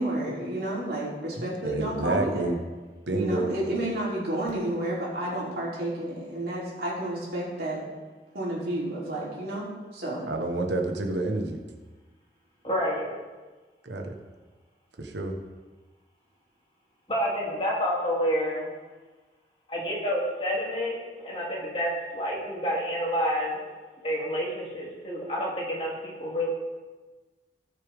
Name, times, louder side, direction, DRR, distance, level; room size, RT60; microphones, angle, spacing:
voice 1, 0.0-2.5 3.1-7.9 8.3-9.7 9.9-10.3, right 1 dB, 60° right, -5 dB, 3.3 m, -31 dB
voice 2, 1.4-2.6 3.1-3.5 10.3-11.6 13.8-14.1 15.0-15.4, right 2 dB, 85° right, 3 dB, 1.3 m, -28 dB
voice 3, 12.6-13.1 17.1-18.7 19.7-23.6 24.0-26.5, equal, 30° left, -5 dB, 2.8 m, -29 dB
17.5 x 6.6 x 3.6 m, 1.3 s
head